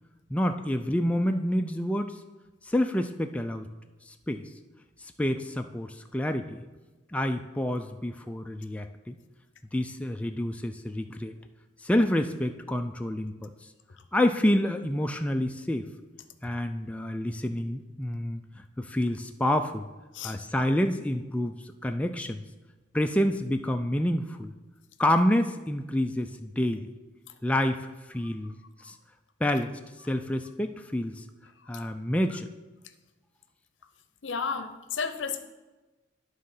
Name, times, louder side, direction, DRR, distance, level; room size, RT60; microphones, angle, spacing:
voice 1, 0.3-2.1 2.7-3.7 4.3-4.4 5.2-6.6 7.1-9.2 9.7-11.3 11.8-13.5 14.1-15.9 16.4-18.4 18.8-19.9 20.2-21.6 21.8-22.4 22.9-24.5 25.0-26.9 27.4-28.6 28.8-28.9 29.4-29.8 30.1-31.2 31.7-32.5, left 1 dB, 5° left, 5 dB, 0.3 m, -28 dB
voice 2, 34.2-35.4, left 5 dB, 75° left, 9 dB, 0.7 m, -32 dB
11.0 x 3.8 x 5.5 m, 1.2 s
head